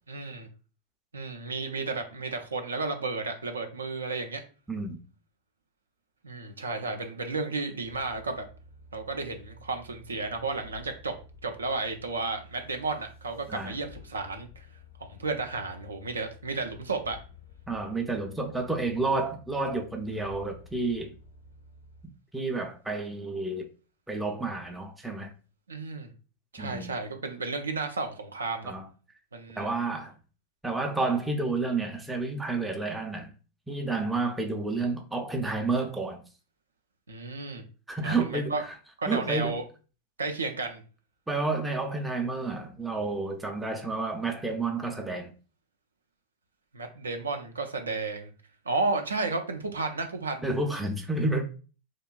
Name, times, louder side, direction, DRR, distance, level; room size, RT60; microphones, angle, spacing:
voice 1, 0.1-0.5 1.1-4.4 6.2-8.4 8.9-11.1 11.4-14.7 15.0-17.2 25.7-26.1 26.5-28.7 29.3-29.7 37.1-37.6 38.0-38.6 39.0-39.6 40.2-40.8 46.7-48.3 48.7-50.5, right 3 dB, 75° right, 0.3 m, -33 dB
sound 1, 7.8-22.0, left 4 dB, 60° left, 0.4 m, -52 dB
voice 2, 17.7-21.1 22.3-23.7 24.1-25.3 26.6-26.9 28.6-28.9 29.6-30.1 30.6-33.3 33.7-36.2 37.9-38.7 39.1-39.5 41.3-45.3 50.4-51.4, right 3 dB, 5° right, 0.4 m, -30 dB
2.8 x 2.2 x 2.2 m
figure-of-eight pair, 90°, 0 cm